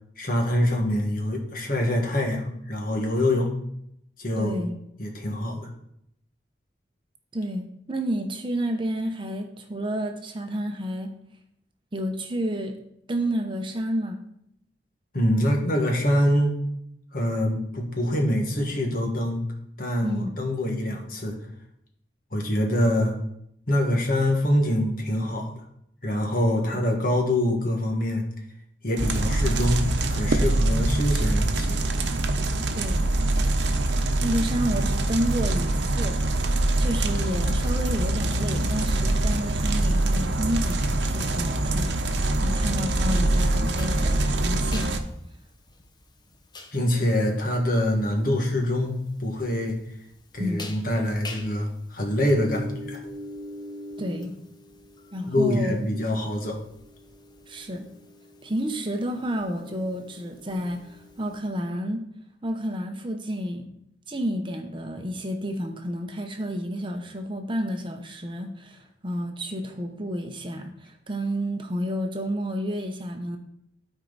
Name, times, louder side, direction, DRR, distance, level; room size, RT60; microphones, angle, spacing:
voice 1, 0.2-3.5 4.2-4.5 5.0-5.7 15.1-16.6 17.1-19.4 19.8-21.4 22.3-23.2 23.7-25.6 26.0-28.2 28.8-31.8 46.7-49.8 50.3-53.0 55.3-56.6, left 1 dB, 55° left, 1 dB, 1.6 m, -25 dB
voice 2, 4.4-4.8 7.3-11.1 11.9-12.8 13.1-14.2 20.0-20.3 32.7-33.1 34.2-36.4 36.8-44.9 50.4-50.7 54.0-54.3 55.1-55.9 57.5-57.9 58.4-62.0 62.4-63.7 64.1-73.4, equal, 30° right, 4 dB, 0.8 m, -30 dB
sound 1, 29.0-45.0, right 2 dB, 85° right, 0.8 m, -24 dB
sound 2, 43.7-61.4, left 1 dB, 25° left, 0.8 m, -44 dB
12.5 x 4.6 x 4.0 m, 0.74 s
head